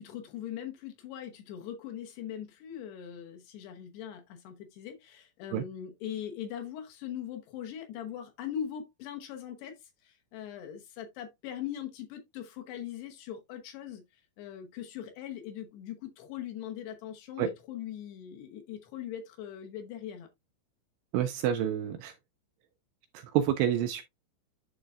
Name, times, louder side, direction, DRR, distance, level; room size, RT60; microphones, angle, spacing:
voice 1, 0.0-9.8 10.0-14.0 14.4-20.3, left 10 dB, 75° left, 3.0 m, -41 dB
voice 2, 21.1-22.1 23.1-24.0, right 10 dB, 80° right, 2.4 m, -28 dB
11.0 x 3.8 x 2.4 m
omnidirectional pair, 5.2 m